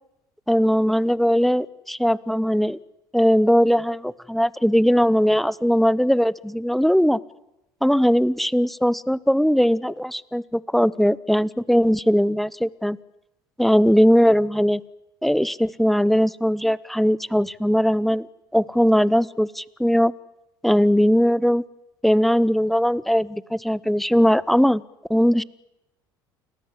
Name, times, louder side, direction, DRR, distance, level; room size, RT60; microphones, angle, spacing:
voice 1, 0.5-2.8 3.1-7.2 7.8-13.0 13.6-14.8 15.2-18.3 18.5-20.1 20.6-21.6 22.0-24.8 25.1-25.4, equal, ahead, 20 dB, 1.0 m, -19 dB
29.5 x 20.0 x 8.4 m, 0.91 s
hypercardioid pair, 65°, 11 cm